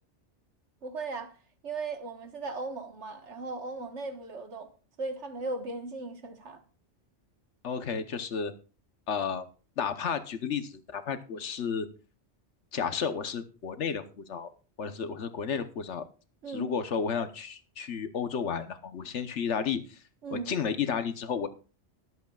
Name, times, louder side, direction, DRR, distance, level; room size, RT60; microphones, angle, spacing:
voice 1, 0.8-1.4 1.6-4.7 5.0-6.6 16.4-16.8 19.0-19.1 20.2-20.6, right 3 dB, 75° right, 1.7 m, -37 dB
voice 2, 7.6-8.5 9.1-9.5 9.8-11.9 12.7-14.5 14.8-16.0 16.5-20.0 20.3-21.5, left 6 dB, 75° left, 1.3 m, -32 dB
22.0 x 8.2 x 2.4 m
omnidirectional pair, 1.2 m